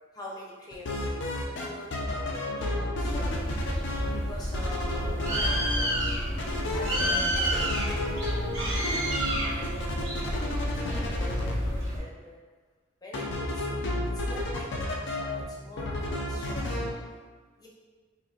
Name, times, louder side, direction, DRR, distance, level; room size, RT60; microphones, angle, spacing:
voice 1, 0.1-3.6 4.1-8.6 9.4-12.4 13.0-17.0 17.6-17.7, left 1 dB, 20° left, -4 dB, 0.7 m, -44 dB
sound 1, 0.7-1.7 1.9-4.2 4.5-6.1 6.4-11.5 13.1-15.4 15.8-16.9, left 1 dB, 60° left, 0.5 m, -31 dB
Bird, 3.0-12.0, equal, 75° right, 0.9 m, -30 dB
4.2 x 2.8 x 2.4 m, 1.4 s
head